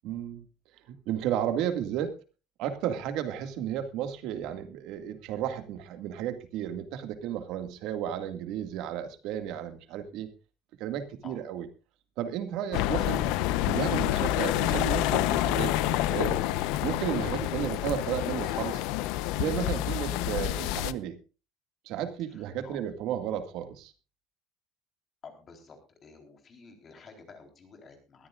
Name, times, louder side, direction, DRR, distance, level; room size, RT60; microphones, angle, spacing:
voice 1, 0.0-0.4 0.9-2.1 2.6-10.3 10.8-11.7 12.2-13.3 13.7-16.4 16.8-18.8 19.4-21.2 21.9-23.9, right 10 dB, 60° right, 8 dB, 2.1 m, -33 dB
sound 1, 12.7-20.9, left 14 dB, 75° left, 0.8 m, -28 dB
voice 2, 22.3-22.8 25.2-28.3, left 5 dB, 25° left, 5 dB, 4.0 m, -50 dB
21.5 x 14.0 x 2.5 m, 0.33 s
cardioid pair, 165°, 0 cm